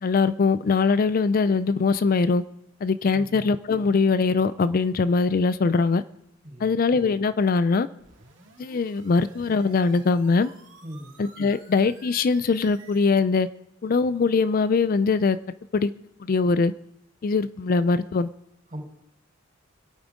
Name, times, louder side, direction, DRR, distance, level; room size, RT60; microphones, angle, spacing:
voice 1, 0.0-2.4 2.8-6.0 6.6-7.9 8.6-10.5 11.2-13.5 13.8-15.4 15.7-15.9 16.2-16.7 17.2-18.3, left 4 dB, 45° left, 0.4 m, -22 dB
voice 2, 3.1-3.5 6.4-6.8 10.8-11.2 18.7-18.8, equal, 40° right, 4.2 m, -39 dB
sound 1, 8.0-13.0, right 4 dB, 60° right, 2.4 m, -52 dB
25.0 x 8.9 x 3.7 m
head